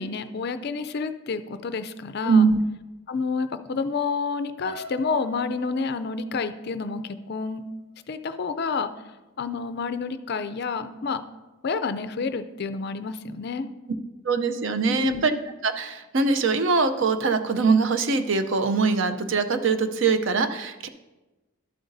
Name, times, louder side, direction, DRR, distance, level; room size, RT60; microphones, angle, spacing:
voice 1, 0.0-2.5 3.1-7.6 8.1-8.9 9.4-11.2 11.6-13.7 14.9-15.3, left 4 dB, 50° left, 11 dB, 0.4 m, -29 dB
voice 2, 2.3-2.6 14.2-15.3 15.6-20.9, right 4 dB, 60° right, 9 dB, 0.5 m, -22 dB
sound 1, 4.6-8.6 9.1-9.4 9.7-9.8, left 1 dB, 30° right, 2.5 m, -45 dB
12.0 x 7.8 x 2.6 m, 1.1 s
head